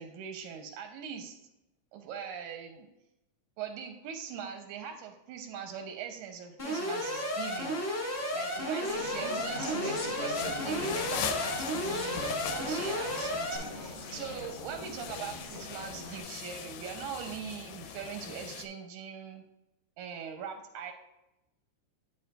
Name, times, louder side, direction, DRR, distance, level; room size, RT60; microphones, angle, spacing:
voice 1, 0.0-1.4 1.9-2.9 3.6-7.8 8.3-19.4 20.0-20.9, right 7 dB, 80° right, 4 dB, 1.9 m, -41 dB
Alarm, 6.6-13.6, equal, 30° left, 1.2 m, -33 dB
Conversation, 8.8-16.2, left 2 dB, 65° left, 1.3 m, -42 dB
sound 1, 10.3-18.7, left 9 dB, 85° left, 2.2 m, -41 dB
8.8 x 6.5 x 2.2 m, 0.90 s
omnidirectional pair, 3.9 m